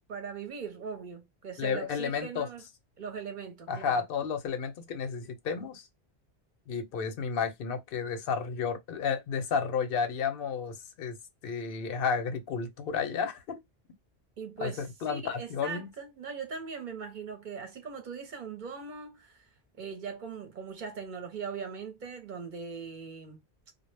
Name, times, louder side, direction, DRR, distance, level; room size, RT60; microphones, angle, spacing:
voice 1, 0.1-2.6 3.0-4.0 14.4-19.5 19.8-23.4, right 5 dB, 55° right, 0.7 m, -40 dB
voice 2, 1.6-2.5 3.7-5.9 6.7-11.2 11.4-13.6 14.6-15.9, left 6 dB, 60° left, 0.7 m, -32 dB
2.1 x 2.0 x 3.1 m
omnidirectional pair, 1.1 m